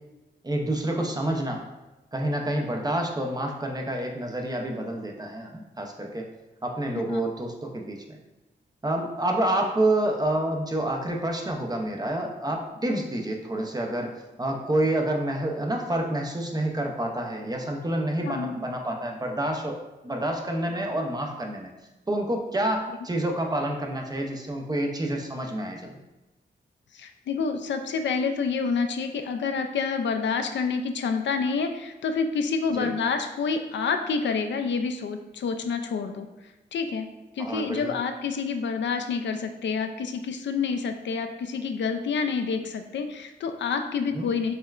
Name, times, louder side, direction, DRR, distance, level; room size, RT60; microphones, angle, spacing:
voice 1, 0.4-1.7 2.1-6.3 6.6-8.0 8.8-14.1 14.4-21.7 22.1-26.0 32.7-32.9 37.4-37.9 44.1-44.3, right 1 dB, 20° right, 1 dB, 0.6 m, -28 dB
voice 2, 18.2-18.6 26.9-36.3 36.7-37.1 37.3-44.5, left 5 dB, 80° left, 6 dB, 0.4 m, -28 dB
6.4 x 2.1 x 2.4 m, 1.1 s
wide cardioid pair, 85°, 19 cm